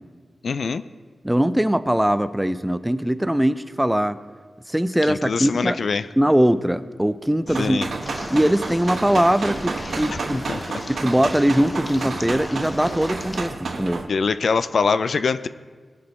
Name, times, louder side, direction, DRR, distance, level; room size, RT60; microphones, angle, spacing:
voice 1, 0.4-0.8 5.1-6.1 7.6-7.9 10.1-10.2 10.5-10.6 14.1-15.5, left 5 dB, 70° left, 13 dB, 0.3 m, -23 dB
voice 2, 1.2-4.2 4.7-5.8 6.2-7.8 8.3-10.5 11.0-13.5 13.8-14.0, equal, 5° right, 13 dB, 0.4 m, -21 dB
sound 1, 7.5-14.0, right 3 dB, 75° right, 1.0 m, -30 dB
sound 2, 8.0-13.5, left 1 dB, 25° left, 0.8 m, -37 dB
18.5 x 6.2 x 4.2 m, 1.5 s
wide cardioid pair, 80°, 0 cm